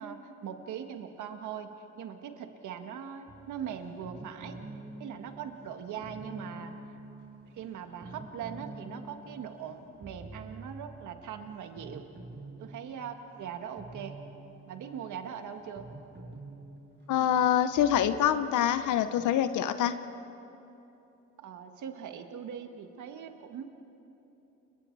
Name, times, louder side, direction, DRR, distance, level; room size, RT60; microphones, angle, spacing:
voice 1, 0.0-1.7 1.9-4.6 5.0-6.7 7.6-12.0 12.6-14.2 14.7-15.9 21.4-23.7, right 8 dB, 80° right, 6 dB, 1.8 m, -41 dB
sound 1, 3.3-19.4, right 2 dB, 35° right, 5.3 m, -48 dB
voice 2, 17.1-20.0, left 10 dB, 80° left, 11 dB, 0.9 m, -25 dB
29.5 x 23.0 x 4.8 m, 3.0 s
cardioid pair, 90°, 30 cm